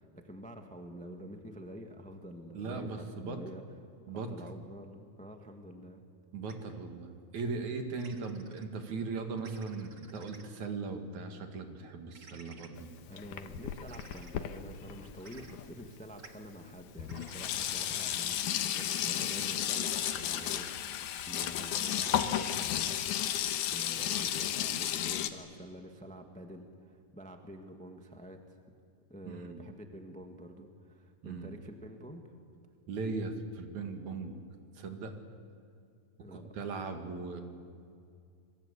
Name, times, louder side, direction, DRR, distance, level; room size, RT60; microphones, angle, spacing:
voice 1, 0.0-3.6 4.1-6.0 13.1-23.4 23.6-28.6 29.1-32.3 36.2-36.5, equal, 5° left, 4 dB, 0.7 m, -48 dB
voice 2, 2.5-3.4 4.1-4.4 6.3-12.9 29.2-29.6 31.2-31.5 32.9-34.3 34.7-35.1 36.3-37.4, right 4 dB, 65° right, 5 dB, 3.3 m, -38 dB
sound 1, 6.5-6.6 8.0-8.6 9.4-10.4 12.1-12.7 13.9-14.3 15.2-15.5 16.2-16.3 17.0-17.4 17.9-18.2 20.0-20.8, right 4 dB, 35° right, 1.4 m, -54 dB
Sink (filling or washing), 12.8-15.9 16.7-16.8 17.0-25.3, left 10 dB, 85° left, 2.6 m, -33 dB
27.0 x 22.5 x 8.3 m, 2.3 s
omnidirectional pair, 3.6 m